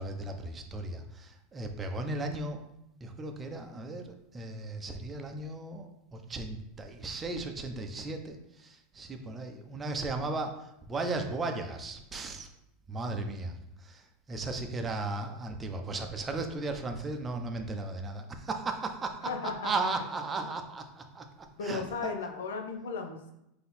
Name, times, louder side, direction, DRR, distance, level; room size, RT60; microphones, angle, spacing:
voice 1, 0.0-2.6 3.0-12.5 12.9-19.3 19.6-21.2 21.6-22.1, right 3 dB, 20° right, 5 dB, 0.6 m, -36 dB
voice 2, 19.2-19.7 21.6-23.3, left 4 dB, 85° left, 5 dB, 0.6 m, -35 dB
3.8 x 2.8 x 4.1 m, 0.83 s
supercardioid pair, 110°, 0 cm